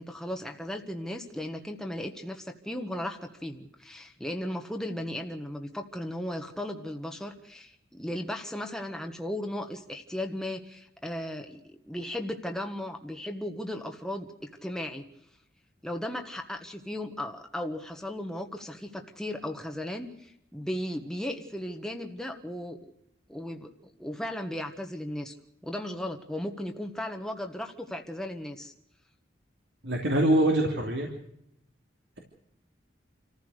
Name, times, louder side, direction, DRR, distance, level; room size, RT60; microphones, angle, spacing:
voice 1, 0.0-14.3 14.6-15.0 15.8-22.9 23.3-23.7 24.0-25.3 25.6-28.7, left 1 dB, 5° left, 4 dB, 1.4 m, -36 dB
voice 2, 29.8-31.1, right 1 dB, 75° right, 1 dB, 3.0 m, -24 dB
27.5 x 15.0 x 6.6 m, 0.76 s
head